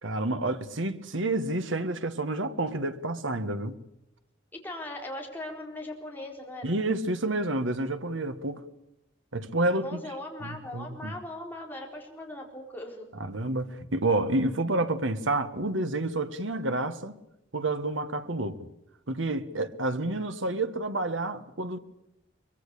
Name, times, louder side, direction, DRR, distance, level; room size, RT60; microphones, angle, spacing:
voice 1, 0.0-3.7 6.6-8.6 9.3-10.1 10.4-11.1 13.1-17.1 17.5-18.6 19.1-21.8, right 2 dB, 85° right, 1.5 m, -29 dB
voice 2, 4.5-6.7 9.8-13.1, left 1 dB, 10° left, 4.2 m, -39 dB
23.5 x 22.5 x 8.4 m
head